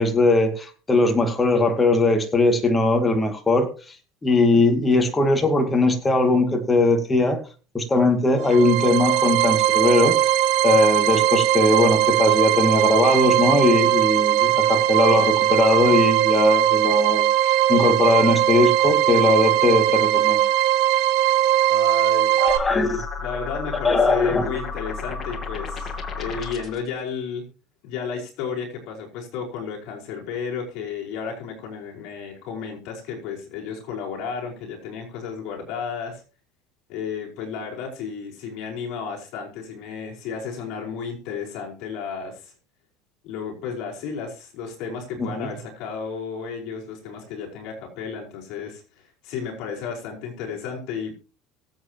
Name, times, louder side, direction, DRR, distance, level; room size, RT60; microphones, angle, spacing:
voice 1, 0.0-4.0 4.2-7.4 7.7-10.2 10.6-20.4 22.4-23.0 23.8-24.5 45.2-45.5, left 2 dB, 15° left, 4 dB, 2.3 m, -20 dB
sound 1, 8.4-22.6, right 13 dB, 70° right, 1.7 m, -19 dB
voice 2, 21.7-22.6 23.2-27.4 27.8-36.2 36.9-42.5 43.2-51.2, left 6 dB, 60° left, -1 dB, 5.0 m, -33 dB
sound 2, 22.5-26.9, left 4 dB, 30° left, 2.7 m, -32 dB
23.0 x 8.2 x 3.0 m, 0.35 s
supercardioid pair, 130°, 0 cm